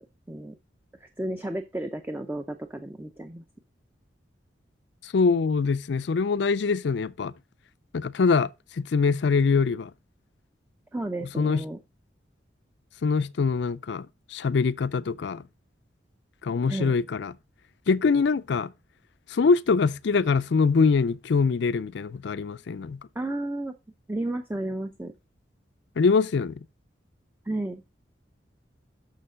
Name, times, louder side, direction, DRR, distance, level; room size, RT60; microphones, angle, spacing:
voice 1, 1.0-3.4 10.9-11.8 16.7-16.9 23.2-23.7 24.1-25.1 27.5-27.8, right 1 dB, 10° right, 0.5 m, -32 dB
voice 2, 5.0-7.3 7.9-8.5 8.8-9.9 11.4-11.6 13.0-15.4 16.4-17.3 17.9-18.7 19.3-23.0 26.0-26.6, left 4 dB, 65° left, 0.4 m, -23 dB
6.7 x 6.3 x 4.9 m
head